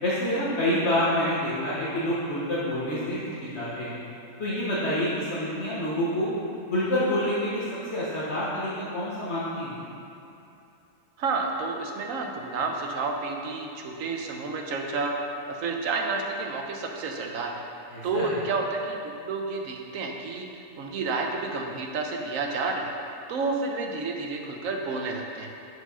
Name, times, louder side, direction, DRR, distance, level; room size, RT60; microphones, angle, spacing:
voice 1, 0.0-3.3 3.5-4.0 4.4-6.3 6.7-7.6 7.9-9.7 17.9-18.4, left 1 dB, 50° left, -9 dB, 1.5 m, -27 dB
voice 2, 11.2-15.1 15.5-17.6 18.0-22.9 23.3-25.5, right 3 dB, 70° right, 2 dB, 1.2 m, -30 dB
6.1 x 5.4 x 5.5 m, 2.7 s
omnidirectional pair, 1.5 m